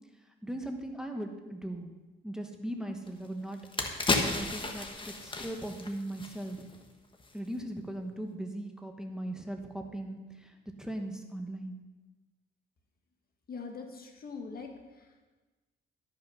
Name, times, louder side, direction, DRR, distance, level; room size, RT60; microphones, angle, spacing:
voice 1, 0.4-1.9 2.2-6.6 7.3-11.8, right 1 dB, 5° right, 4 dB, 1.1 m, -39 dB
sound 1, 3.1-3.2 3.5-6.8 7.1-7.3, left 3 dB, 25° left, 1.3 m, -33 dB
voice 2, 13.5-15.3, left 4 dB, 50° left, 3 dB, 1.5 m, -43 dB
12.0 x 5.8 x 5.5 m, 1.2 s
cardioid pair, 90°, 20 cm